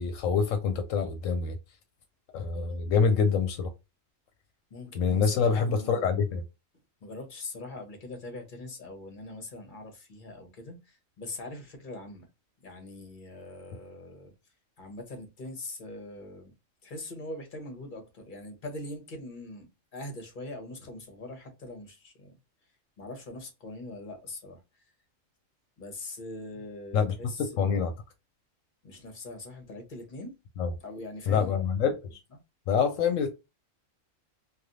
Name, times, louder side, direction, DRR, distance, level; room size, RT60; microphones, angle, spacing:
voice 1, 0.0-1.6 2.3-3.7 5.0-6.4 26.9-27.9 30.6-30.7 31.3-32.2 32.7-33.3, left 6 dB, 80° left, 1.0 m, -26 dB
voice 2, 4.7-6.2 7.0-12.3 12.6-14.3 14.8-16.5 16.8-22.4 23.0-24.8 25.8-27.9 28.8-30.3 30.8-31.6, left 2 dB, 40° left, 1.1 m, -42 dB
3.2 x 2.4 x 2.6 m
omnidirectional pair, 1.4 m